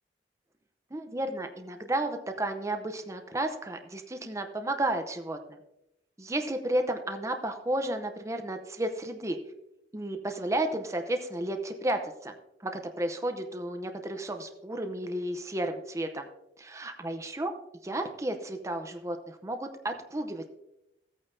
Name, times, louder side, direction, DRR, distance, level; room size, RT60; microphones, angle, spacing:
voice 1, 0.9-5.6 6.2-9.4 9.9-12.3 12.6-16.3 16.6-17.5 17.8-20.5, right 1 dB, 20° right, 6 dB, 0.7 m, -32 dB
15.5 x 8.9 x 2.6 m, 0.85 s
head